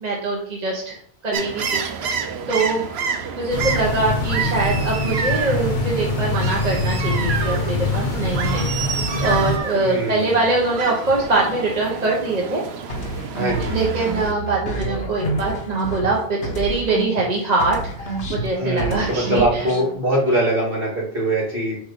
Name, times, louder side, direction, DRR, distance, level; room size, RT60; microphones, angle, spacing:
voice 1, 0.0-2.0 2.5-2.8 3.3-12.6 13.7-19.6, right 3 dB, 45° right, -2 dB, 1.2 m, -23 dB
sound 1, 1.3-14.3, right 6 dB, 85° right, 1.0 m, -29 dB
sound 2, 3.5-9.6, left 2 dB, 55° left, 0.8 m, -24 dB
voice 2, 9.8-10.4 13.3-13.8 18.6-21.8, right 1 dB, 65° right, -5 dB, 2.7 m, -22 dB
sound 3, 12.9-17.3 17.6-19.9, right 2 dB, 70° left, 1.4 m, -28 dB
7.7 x 2.7 x 5.2 m, 0.62 s
omnidirectional pair, 1.0 m